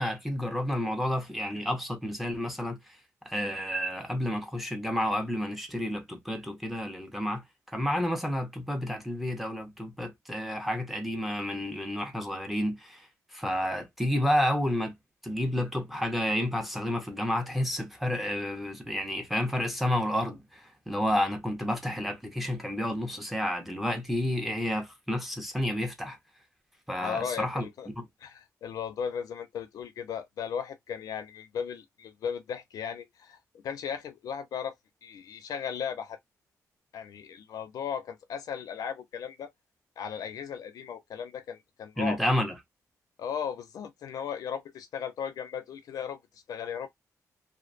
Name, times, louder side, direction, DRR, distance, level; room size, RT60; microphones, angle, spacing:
voice 1, 0.0-2.8 3.3-13.1 13.3-14.9 15.2-26.2 26.9-27.7 28.0-28.1 42.0-42.5, left 1 dB, ahead, 0.6 m, -30 dB
voice 2, 27.0-27.9 28.2-33.4 33.6-34.7 35.0-36.2 36.9-39.5 40.0-42.2 43.2-46.9, left 7 dB, 80° left, 0.6 m, -36 dB
2.5 x 2.2 x 2.4 m
wide cardioid pair, 165°, 6 cm